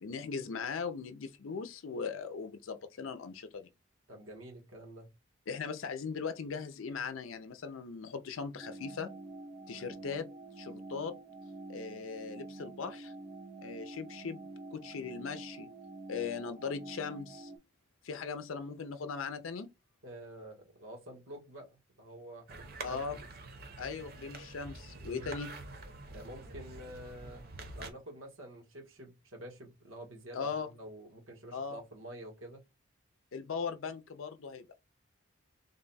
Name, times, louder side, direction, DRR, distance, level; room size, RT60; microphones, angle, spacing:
voice 1, 0.0-3.7 5.5-9.1 9.7-10.3 10.6-11.1 11.7-13.1 13.6-14.4 14.7-15.7 16.1-17.5 18.0-19.7 22.8-23.2 23.8-25.6 30.3-30.7 31.5-31.8 33.3-34.7, left 5 dB, 85° left, 0.5 m, -39 dB
voice 2, 4.1-5.1 20.0-23.3 25.1-25.3 26.1-27.5 27.7-32.6, right 1 dB, 90° right, 1.4 m, -48 dB
sound 1, 8.6-17.6, right 2 dB, 20° right, 0.4 m, -47 dB
sound 2, 22.5-27.9, right 2 dB, 50° right, 0.9 m, -47 dB
3.8 x 2.2 x 3.9 m
head